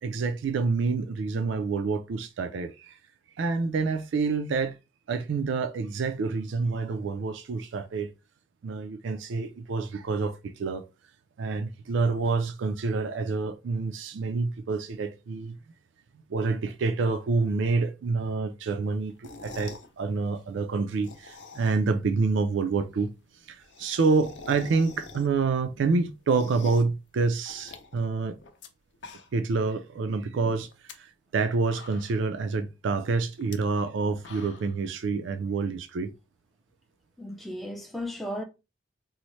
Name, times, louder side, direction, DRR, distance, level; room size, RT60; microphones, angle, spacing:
voice 1, 0.0-2.9 3.4-4.8 5.1-8.1 8.6-10.9 11.4-15.5 16.3-23.1 23.5-28.4 29.3-30.7 31.0-36.1, right 4 dB, 70° right, 0.4 m, -27 dB
sound 1, 19.1-19.9 20.9-22.0 22.3-22.4 22.6-22.7 23.0-23.1 23.3-25.5 25.9-27.0 27.5-28.7 28.9-29.5 29.9-30.0 30.7-30.9 31.4-31.5 31.7-32.3 33.4-33.6 34.0-34.8, left 4 dB, 65° left, 0.5 m, -45 dB
voice 2, 37.2-38.4, left 1 dB, ahead, 0.4 m, -35 dB
4.0 x 2.0 x 3.0 m
head